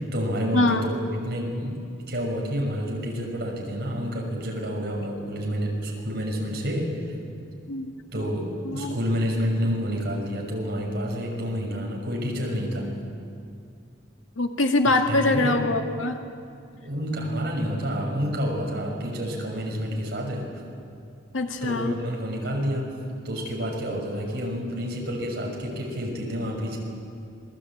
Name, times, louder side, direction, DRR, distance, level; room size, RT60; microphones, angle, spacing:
voice 1, 0.0-7.1 8.1-12.9 15.1-15.7 16.8-20.5 21.6-22.9 23.2-26.8, equal, 55° right, -1 dB, 6.2 m, -29 dB
voice 2, 0.5-0.9 7.7-8.3 8.6-9.0 14.4-16.2 21.3-21.9, left 2 dB, 90° left, 4 dB, 2.2 m, -24 dB
27.0 x 20.5 x 8.8 m, 2.4 s
head